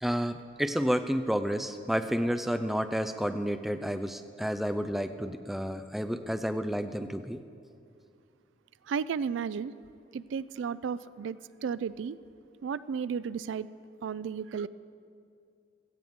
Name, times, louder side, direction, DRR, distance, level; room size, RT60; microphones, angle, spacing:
voice 1, 0.0-7.4, equal, ahead, 7 dB, 0.4 m, -30 dB
voice 2, 8.9-9.7 10.1-12.2 12.6-13.7 14.0-14.7, right 6 dB, 75° right, 17 dB, 0.3 m, -33 dB
17.0 x 14.5 x 3.6 m, 2.4 s
head